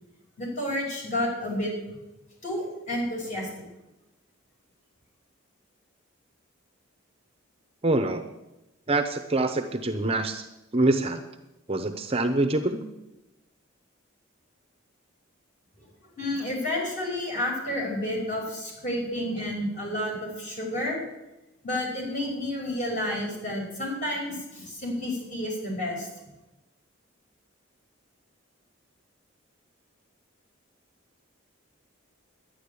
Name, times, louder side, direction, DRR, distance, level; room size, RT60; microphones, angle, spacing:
voice 1, 0.4-1.7 2.4-3.5 16.1-21.0 21.6-26.1, left 1 dB, 35° left, -2 dB, 5.6 m, -30 dB
voice 2, 7.8-8.2 8.9-10.4 10.7-11.2 11.7-12.8, right 2 dB, 30° right, 7 dB, 0.7 m, -25 dB
11.5 x 10.0 x 8.3 m, 0.98 s
head